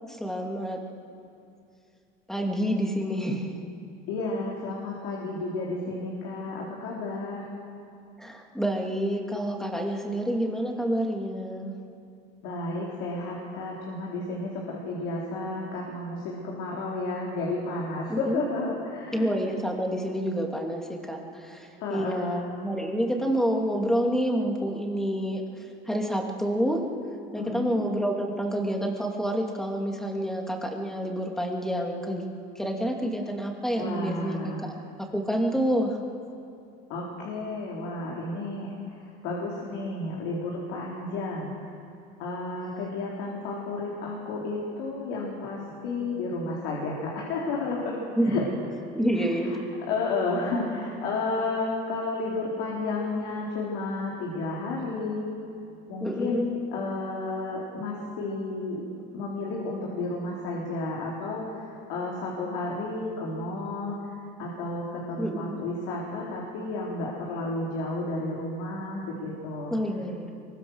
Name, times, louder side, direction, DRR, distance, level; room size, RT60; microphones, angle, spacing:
voice 1, 0.1-0.8 2.3-3.5 8.2-11.8 18.1-18.4 19.1-26.8 27.3-32.2 32.5-36.0 48.2-48.4 48.9-49.6 56.0-56.4 65.2-65.5 69.7-70.3, equal, ahead, 1 dB, 2.9 m, -28 dB
voice 2, 4.1-7.5 12.4-19.3 21.8-22.4 27.4-27.8 33.8-34.7 36.9-41.5 42.2-48.0 48.2-48.5 49.4-49.6 49.9-55.3 55.9-58.8 59.1-69.8, left 2 dB, 75° left, -3 dB, 4.1 m, -32 dB
23.5 x 23.0 x 6.6 m, 2.6 s
cardioid pair, 120°, 21 cm